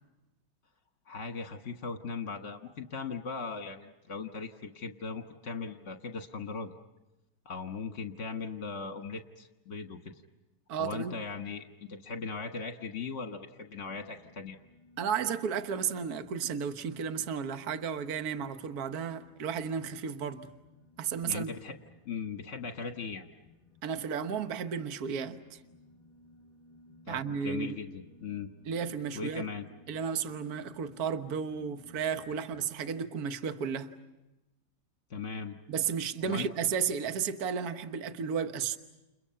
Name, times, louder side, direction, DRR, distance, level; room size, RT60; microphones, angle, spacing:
voice 1, 1.1-6.7 7.4-10.1 10.8-14.6 21.2-21.7 22.0-23.3 27.1-28.5 29.1-29.6 35.1-35.6 36.2-36.5, left 4 dB, 40° left, 1.5 m, -38 dB
voice 2, 10.7-11.2 15.0-20.5 21.0-21.5 23.8-25.6 27.1-27.8 28.6-29.5 29.9-34.0 35.7-38.8, right 7 dB, 55° right, 1.5 m, -33 dB
sound 1, 13.8-32.8, left 1 dB, 20° right, 5.7 m, -59 dB
30.0 x 30.0 x 5.7 m
omnidirectional pair, 2.2 m